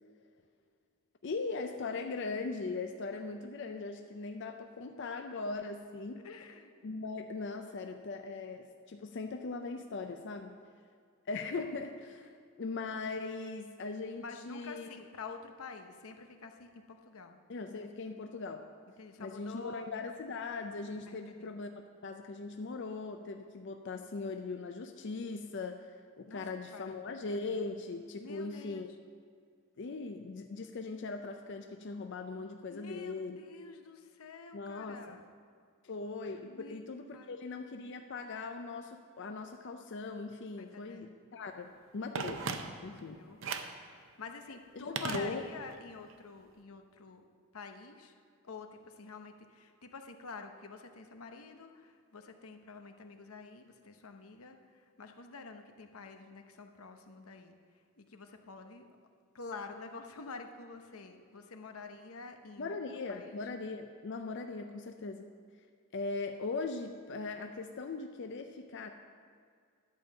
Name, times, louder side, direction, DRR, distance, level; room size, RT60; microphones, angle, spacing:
voice 1, 1.2-6.2 6.8-10.6 11.3-14.9 17.5-18.7 19.2-28.9 29.8-33.4 34.5-35.2 35.8-43.2 44.8-45.4 62.6-65.3 65.9-68.9, left 3 dB, 55° left, 5 dB, 0.5 m, -40 dB
voice 2, 6.2-7.0 14.2-17.4 19.0-19.9 21.1-21.5 26.3-26.4 26.7-27.0 28.2-28.8 32.7-35.3 36.4-37.4 40.6-41.1 43.1-43.6 44.0-47.3 47.5-48.1 48.4-57.6 58.0-58.9 59.3-62.8 63.1-63.4, left 4 dB, 90° left, 6 dB, 0.9 m, -48 dB
Telephone, 42.1-43.0 43.4-43.8 45.0-45.8 46.1-46.2, right 5 dB, 60° right, 0.6 m, -38 dB
11.0 x 5.3 x 7.6 m, 2.2 s
head